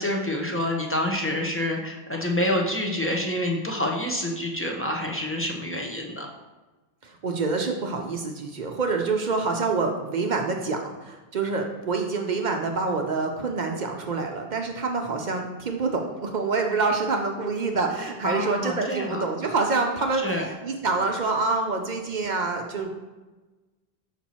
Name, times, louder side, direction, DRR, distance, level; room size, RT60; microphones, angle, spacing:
voice 1, 0.0-6.3 18.2-19.2 20.2-20.5, left 1 dB, 15° left, 0 dB, 0.7 m, -27 dB
voice 2, 7.0-22.9, right 4 dB, 55° right, 3 dB, 0.7 m, -27 dB
6.0 x 4.4 x 4.2 m, 1.2 s
omnidirectional pair, 1.0 m